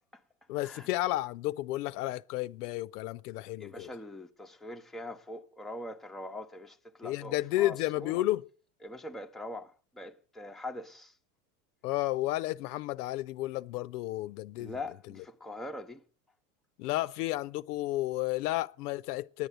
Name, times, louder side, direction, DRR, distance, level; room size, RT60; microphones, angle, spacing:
voice 1, 0.5-3.9 7.0-8.5 11.8-14.8 16.8-19.5, left 16 dB, 70° left, 0.6 m, -32 dB
voice 2, 3.6-8.1 8.8-11.2 14.6-16.0, left 1 dB, ahead, 0.8 m, -42 dB
10.0 x 8.8 x 7.9 m
hypercardioid pair, 85°, 48 cm